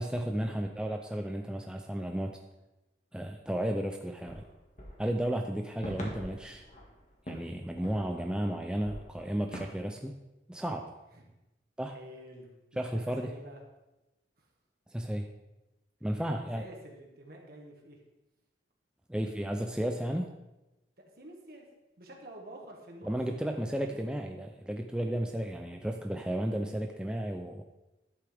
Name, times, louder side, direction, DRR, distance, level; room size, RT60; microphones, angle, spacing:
voice 1, 0.0-2.4 3.1-4.4 5.0-6.6 7.3-10.2 10.5-10.9 11.8-12.0 12.8-13.3 14.9-15.3 16.0-16.6 19.1-20.3 23.0-27.6, right 1 dB, 5° right, 3 dB, 0.4 m, -33 dB
sound 1, 4.3-8.5 8.8-9.8, equal, 40° left, 1.8 m, -45 dB
voice 2, 11.8-13.6 14.4-14.5 16.1-18.0 21.0-21.7 22.0-24.1, right 1 dB, 55° right, 1 dB, 1.7 m, -50 dB
11.0 x 8.2 x 3.5 m, 1.0 s
head